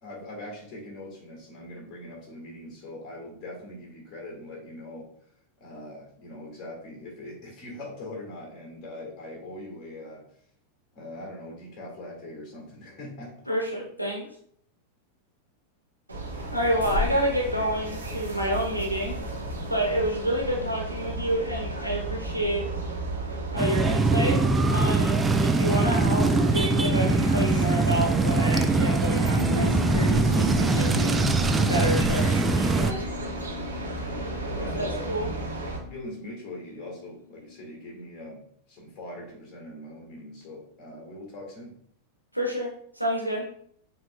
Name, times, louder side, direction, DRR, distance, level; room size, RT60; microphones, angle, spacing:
voice 1, 0.0-5.1 5.6-10.3 10.9-13.4 34.5-35.4 35.9-41.8, left 1 dB, 30° left, -1 dB, 2.0 m, -41 dB
voice 2, 13.5-14.3 16.5-19.1 19.7-22.6 23.5-24.4 24.7-31.2 31.7-33.1 34.1-34.3 34.8-35.3 42.3-42.7 42.9-43.4, equal, 90° left, -2 dB, 0.8 m, -29 dB
sound 1, 16.1-35.8, right 2 dB, 80° right, 1.2 m, -33 dB
sound 2, 23.6-32.9, right 3 dB, 15° right, 0.4 m, -23 dB
sound 3, 29.4-37.7 38.0-38.1, left 11 dB, 60° left, 0.4 m, -38 dB
7.2 x 3.0 x 2.3 m, 0.62 s
figure-of-eight pair, 90°, 0 cm